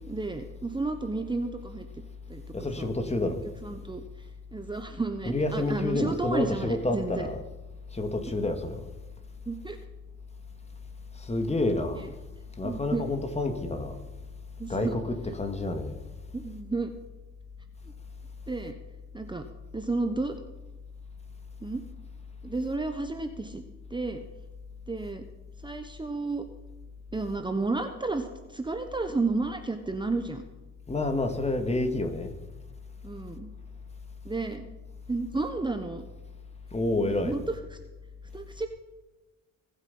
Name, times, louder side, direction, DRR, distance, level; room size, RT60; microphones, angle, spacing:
voice 1, 0.0-1.9 2.3-2.4 2.8-2.9 3.6-4.0 4.5-7.3 9.5-9.8 11.9-12.1 12.6-13.0 14.6-15.0 16.3-16.9 18.5-18.7 19.1-19.4 19.7-20.3 21.6-21.8 22.4-23.6 23.9-24.2 24.9-25.2 25.6-26.4 27.1-30.4 33.0-33.5 34.2-34.7 35.1-36.0 37.2-37.4 38.3-38.7, right 3 dB, 15° right, 1.1 m, -32 dB
voice 2, 2.5-3.4 5.3-7.4 7.9-8.8 11.2-12.1 12.6-14.0 14.7-16.0 30.9-32.3 36.7-37.4, left 2 dB, 20° left, 2.2 m, -29 dB
21.0 x 8.2 x 5.6 m
cardioid pair, 90°, 30 cm